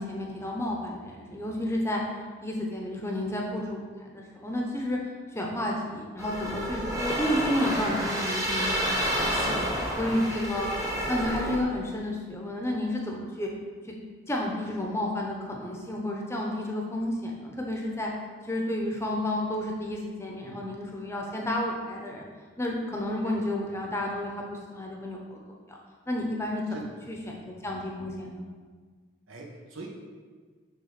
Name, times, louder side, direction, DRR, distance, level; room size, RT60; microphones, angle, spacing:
voice 1, 0.0-2.0 2.4-3.8 4.1-5.0 5.3-9.3 10.0-10.7 11.1-13.5 13.9-14.0 14.3-18.1 18.4-22.3 22.6-25.4 25.7-25.8 26.1-26.6 27.1-28.5, left 1 dB, 15° left, -1 dB, 0.8 m, -31 dB
sound 1, 6.2-11.6, equal, 15° right, 1.0 m, -29 dB
voice 2, 9.3-10.0 20.4-20.7 23.2-23.4 26.7-27.0 29.3-29.9, right 2 dB, 90° right, -1 dB, 1.2 m, -41 dB
6.3 x 3.7 x 5.9 m, 1.5 s
head